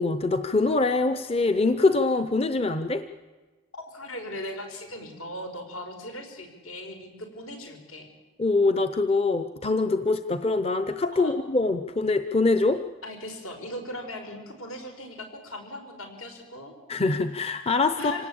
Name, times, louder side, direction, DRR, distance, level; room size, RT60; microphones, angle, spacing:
voice 1, 0.0-3.0 8.4-12.8 16.9-18.3, left 3 dB, 25° left, 10 dB, 0.7 m, -24 dB
voice 2, 3.7-8.1 11.1-11.3 13.0-16.7 18.0-18.3, left 1 dB, 75° left, 4 dB, 5.0 m, -38 dB
26.0 x 18.5 x 8.6 m, 1.3 s
head